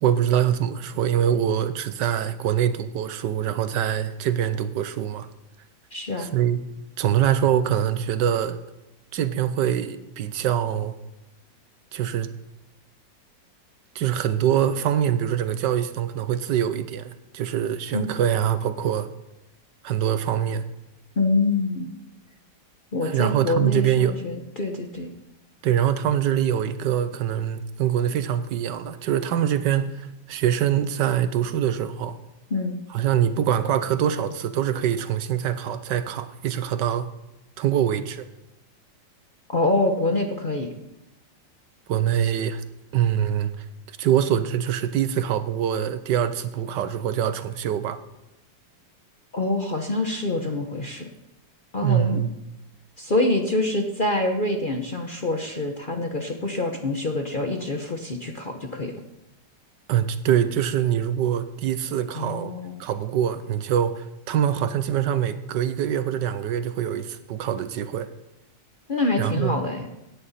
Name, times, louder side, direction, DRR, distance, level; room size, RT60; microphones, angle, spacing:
voice 1, 0.0-5.3 6.2-6.6 7.0-8.6 9.1-11.0 11.9-12.3 13.9-19.1 19.8-20.7 23.0-24.2 25.6-32.2 32.9-37.1 37.6-38.3 41.9-42.6 42.9-43.6 44.0-48.0 51.8-52.3 59.9-62.5 62.8-68.1 69.2-69.5, right 10 dB, 75° right, 12 dB, 1.3 m, -24 dB
voice 2, 5.9-6.3 17.9-18.1 21.2-21.9 22.9-25.1 32.5-32.8 39.5-40.7 49.3-51.1 51.7-52.2 53.0-59.0 62.1-62.8 68.9-69.9, left 2 dB, 35° left, 4 dB, 0.9 m, -26 dB
16.0 x 9.6 x 4.2 m, 0.91 s
omnidirectional pair, 2.0 m